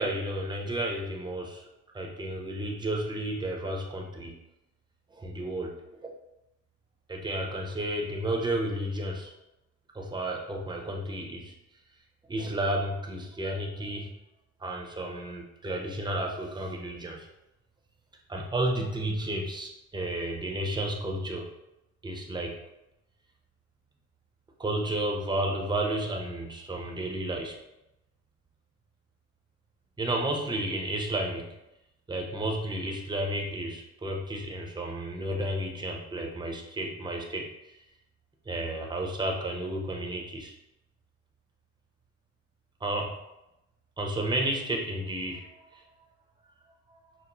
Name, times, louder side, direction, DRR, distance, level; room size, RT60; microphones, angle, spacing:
voice 1, 0.0-1.6 1.9-4.3 5.1-5.7 6.0-6.1 7.1-9.3 9.9-11.5 12.3-14.1 14.6-17.3 18.3-21.5 22.0-22.6 24.6-27.5 30.0-31.5 32.1-37.7 38.5-40.5 42.8-43.2 44.0-45.8, right 1 dB, 15° right, 0 dB, 0.6 m, -32 dB
5.2 x 2.0 x 2.9 m, 0.91 s
cardioid pair, 90°, 30 cm